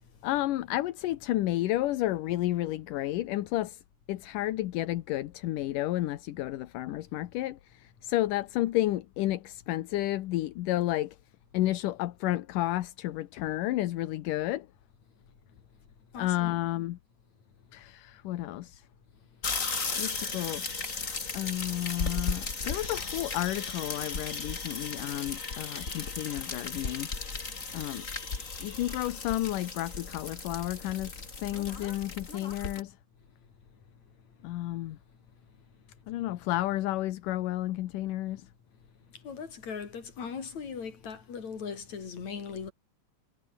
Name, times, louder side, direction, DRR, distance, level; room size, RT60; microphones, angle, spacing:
voice 1, 0.2-3.8 4.1-11.2 11.5-14.7 16.2-17.0 17.7-18.9 20.0-20.8 21.3-27.1 27.7-28.1 28.6-31.1 31.4-33.0 34.4-35.0 36.1-38.5, left 15 dB, 80° left, 2.6 m, -31 dB
voice 2, 16.1-16.7 39.1-42.7, left 6 dB, 60° left, 4.8 m, -39 dB
sound 1, 19.4-32.8, left 4 dB, 25° left, 2.5 m, -36 dB
omnidirectional pair, 3.7 m